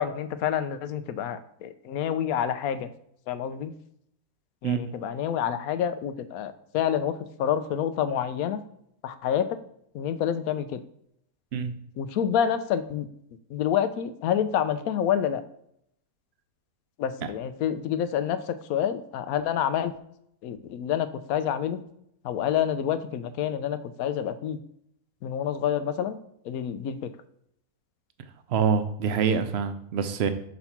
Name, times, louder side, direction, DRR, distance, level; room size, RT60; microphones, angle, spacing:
voice 1, 0.0-2.9 3.3-3.7 4.6-8.6 9.0-9.5 9.9-10.8 12.0-13.1 13.5-15.4 17.0-19.9 20.4-21.8 22.2-24.6 25.2-26.2 26.4-27.1, left 9 dB, 80° left, 11 dB, 1.0 m, -28 dB
voice 2, 28.5-30.3, right 6 dB, 55° right, 9 dB, 0.8 m, -25 dB
5.3 x 4.1 x 5.8 m, 0.72 s
omnidirectional pair, 1.5 m